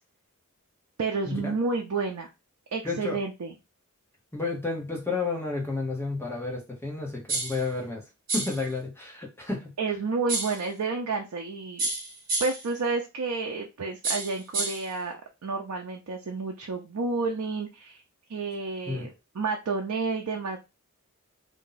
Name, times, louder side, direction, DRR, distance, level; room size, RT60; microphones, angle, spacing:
voice 1, 1.0-2.3 2.7-3.5 9.8-11.8 12.4-15.2 15.4-18.0 18.3-20.6, right 4 dB, 80° right, 2 dB, 0.5 m, -30 dB
voice 2, 2.8-3.2 4.3-8.0 8.3-9.7 18.9-19.1, left 3 dB, 10° left, -1 dB, 1.0 m, -31 dB
sound 1, 7.3-7.6 8.3-8.6 10.3-10.6 11.8-12.7 14.0-14.9, right 3 dB, 45° right, 1.2 m, -30 dB
2.7 x 2.2 x 3.9 m, 0.25 s
head